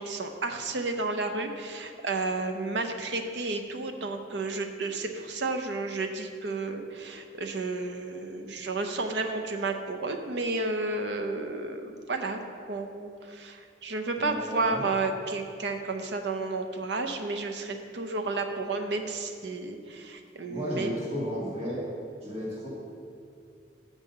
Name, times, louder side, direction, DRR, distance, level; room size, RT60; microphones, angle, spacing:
voice 1, 0.0-12.4 12.7-21.0, right 3 dB, 65° right, 5 dB, 0.6 m, -32 dB
voice 2, 14.1-14.8 20.5-21.8 22.2-22.7, equal, 35° right, -6 dB, 1.9 m, -33 dB
6.1 x 5.4 x 6.7 m, 2.4 s
head